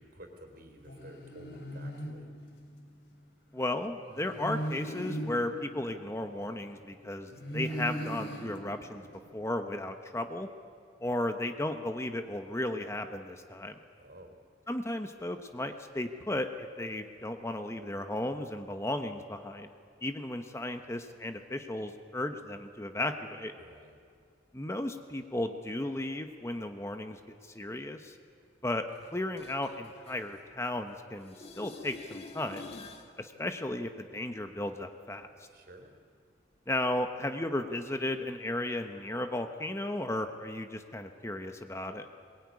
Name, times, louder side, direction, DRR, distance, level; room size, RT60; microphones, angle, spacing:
voice 1, 0.0-2.3 14.0-14.3 23.6-23.9 35.5-35.9, right 1 dB, 55° right, 4 dB, 3.9 m, -51 dB
sound 1, 0.8-3.0 4.1-6.8 7.3-9.6, right 1 dB, 70° left, 3.4 m, -39 dB
voice 2, 3.5-9.1 9.3-10.5 11.0-13.7 14.7-19.7 20.0-23.5 24.5-28.1 28.6-28.8 29.1-32.7 33.2-35.3 36.7-42.1, left 1 dB, 15° left, 6 dB, 1.0 m, -35 dB
sound 2, 28.9-30.9 31.2-33.1 38.9-39.0, left 3 dB, 35° left, 1.8 m, -48 dB
21.5 x 21.5 x 9.6 m, 2.3 s
head